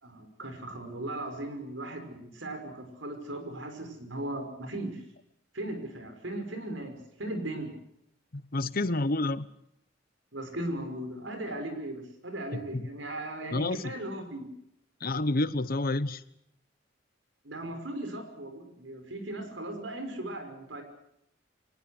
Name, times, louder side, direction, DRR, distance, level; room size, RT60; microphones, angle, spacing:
voice 1, 0.0-5.0 5.5-7.7 10.3-14.5 17.4-20.8, right 1 dB, 85° right, 7 dB, 5.6 m, -37 dB
voice 2, 8.3-9.5 12.5-12.9 13.5-13.9 15.0-16.2, left 2 dB, 50° left, 15 dB, 1.1 m, -29 dB
24.5 x 19.0 x 8.0 m, 0.76 s
head